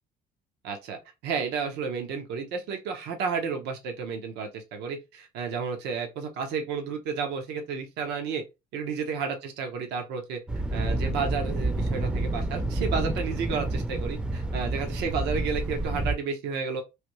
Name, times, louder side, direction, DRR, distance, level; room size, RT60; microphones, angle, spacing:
voice 1, 0.6-8.4 8.7-10.4 10.7-16.8, right 5 dB, 85° right, 0.8 m, -32 dB
Thunder, 10.5-16.2, right 2 dB, 5° right, 0.5 m, -29 dB
3.3 x 2.6 x 3.0 m
cardioid pair, 110°, 17 cm